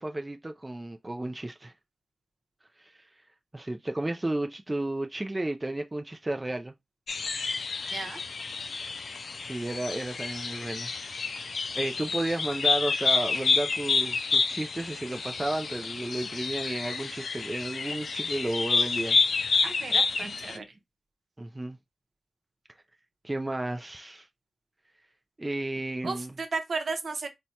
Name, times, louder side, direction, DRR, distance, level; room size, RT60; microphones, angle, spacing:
voice 1, 0.0-1.7 2.8-2.9 3.5-6.7 9.4-10.9 11.7-19.2 21.4-21.8 23.2-24.3 25.4-26.4, right 1 dB, 25° right, 0.4 m, -32 dB
sound 1, 7.1-20.6, left 4 dB, 80° left, 0.4 m, -29 dB
voice 2, 19.6-20.6 26.0-27.3, right 4 dB, 70° right, 0.7 m, -34 dB
4.3 x 2.1 x 2.8 m
cardioid pair, 55°, 0 cm